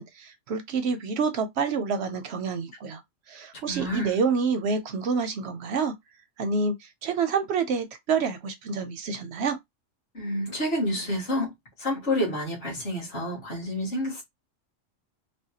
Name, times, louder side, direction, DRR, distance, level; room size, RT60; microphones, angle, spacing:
voice 1, 0.0-3.0 3.3-5.9 6.4-6.7 7.0-9.6, right 5 dB, 65° right, 0.7 m, -27 dB
voice 2, 3.7-4.1 10.1-11.5 11.8-14.2, left 1 dB, 45° left, 1.6 m, -29 dB
3.4 x 2.2 x 2.7 m
omnidirectional pair, 1.4 m